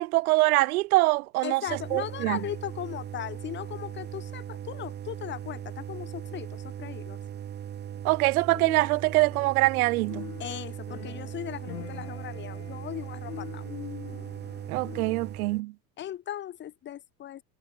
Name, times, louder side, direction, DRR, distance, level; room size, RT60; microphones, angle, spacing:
voice 1, 0.0-1.6 1.9-2.4 8.0-10.3 14.7-15.7, right 21 dB, 85° right, 0.9 m, -24 dB
voice 2, 1.4-7.2 10.4-13.6 16.0-17.4, left 11 dB, 25° left, 0.8 m, -38 dB
sound 1, 1.7-15.6, right 9 dB, 25° right, 0.9 m, -39 dB
sound 2, 8.5-15.4, left 15 dB, 90° left, 7.2 m, -44 dB
supercardioid pair, 120°, 43 cm